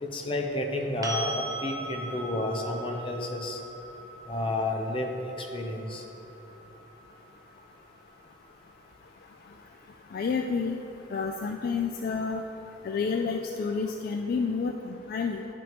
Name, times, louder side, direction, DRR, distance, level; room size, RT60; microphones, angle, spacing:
voice 1, 0.0-3.6 4.3-6.0, left 1 dB, 30° left, 1 dB, 0.7 m, -31 dB
sound 1, 1.0-8.8 11.7-11.8, right 1 dB, 20° right, 0.5 m, -40 dB
voice 2, 10.1-10.8 11.1-12.4 12.8-15.5, left 5 dB, 55° left, 3 dB, 0.3 m, -29 dB
11.0 x 5.1 x 3.1 m, 2.9 s
head